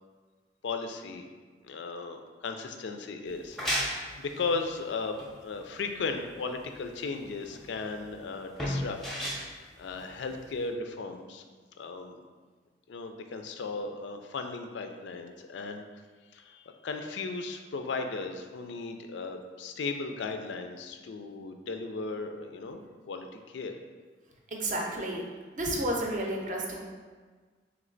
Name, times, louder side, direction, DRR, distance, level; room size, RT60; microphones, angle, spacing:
voice 1, 0.6-1.3 1.6-9.0 9.3-9.5 9.8-11.4 11.8-12.2 12.9-15.8 16.3-23.8, left 4 dB, 70° left, 6 dB, 0.4 m, -36 dB
sound 1, 3.3-10.7, equal, ahead, 0.6 m, -36 dB
voice 2, 24.5-25.2 25.6-26.9, right 1 dB, 40° right, -1 dB, 0.6 m, -31 dB
3.2 x 3.2 x 3.8 m, 1.4 s
head